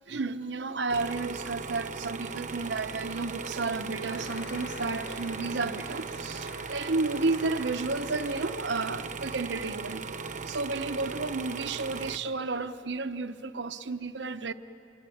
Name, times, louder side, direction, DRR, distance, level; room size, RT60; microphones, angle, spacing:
voice 1, 0.1-10.0 10.4-14.5, right 3 dB, 80° right, 0.9 m, -32 dB
sound 1, 0.9-12.2, right 4 dB, 45° right, 0.9 m, -38 dB
sound 2, 4.0-9.3, left 5 dB, 85° left, 0.8 m, -49 dB
26.5 x 23.0 x 9.3 m
head